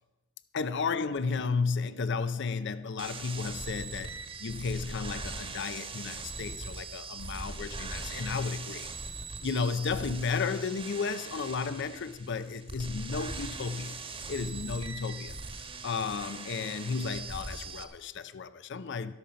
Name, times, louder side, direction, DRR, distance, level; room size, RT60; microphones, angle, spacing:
voice 1, 0.5-8.9 9.4-14.0 14.3-15.4 15.8-19.1, left 5 dB, 55° left, 0.6 m, -33 dB
sound 1, 3.0-17.8, right 3 dB, 25° right, 1.2 m, -41 dB
12.5 x 12.5 x 5.2 m
head